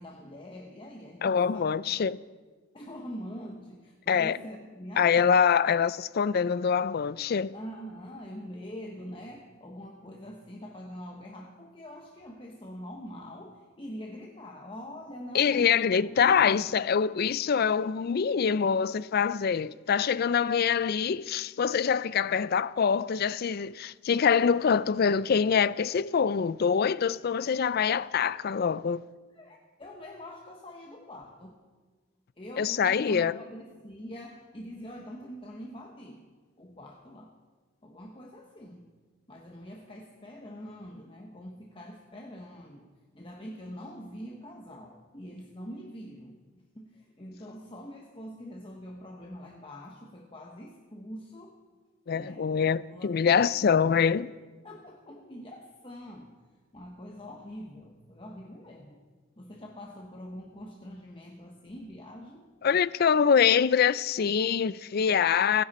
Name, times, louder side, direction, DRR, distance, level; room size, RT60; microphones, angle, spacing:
voice 1, 0.0-1.9 2.7-5.3 7.5-16.7 29.3-31.6 32.4-36.3 36.6-37.3 37.8-38.9 39.3-42.9 43.1-51.6 52.1-52.6 52.9-53.9 54.6-56.4 56.7-59.0 59.4-62.5, equal, 25° left, 1.2 m, -44 dB
voice 2, 1.2-2.2 4.1-4.4 5.0-7.5 15.3-29.0 32.6-33.4 52.1-54.3 62.6-65.6, left 7 dB, 50° left, 0.4 m, -25 dB
29.5 x 10.5 x 4.2 m
head